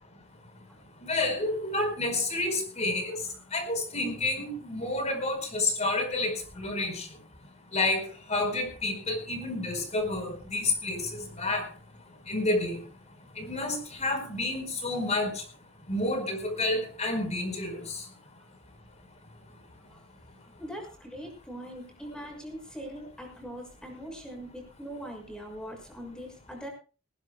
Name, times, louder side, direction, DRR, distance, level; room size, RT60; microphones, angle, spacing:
voice 1, 1.0-3.2 3.5-7.1 7.7-11.7 12.3-12.8 13.4-15.4 15.9-18.0, left 2 dB, 35° left, 7 dB, 4.7 m, -29 dB
voice 2, 20.6-26.7, equal, 5° left, 2 dB, 6.3 m, -41 dB
19.5 x 19.0 x 2.3 m, 0.35 s
head